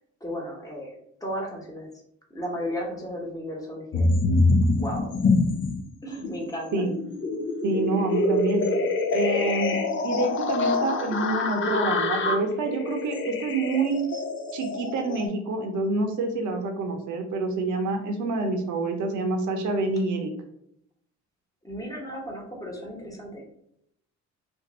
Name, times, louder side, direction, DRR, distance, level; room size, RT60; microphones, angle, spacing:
voice 1, 0.2-1.9 2.3-4.1 4.8-5.1 6.0-6.9 21.6-23.4, equal, 10° left, -1 dB, 1.1 m, -34 dB
sound 1, 3.9-5.8 6.2-15.3, left 3 dB, 40° left, 0.5 m, -25 dB
voice 2, 7.6-8.6 9.1-9.8 10.0-14.2 14.5-20.3, right 3 dB, 75° right, 4 dB, 0.7 m, -27 dB
2.6 x 2.5 x 4.1 m, 0.74 s
cardioid pair, 90°, 30 cm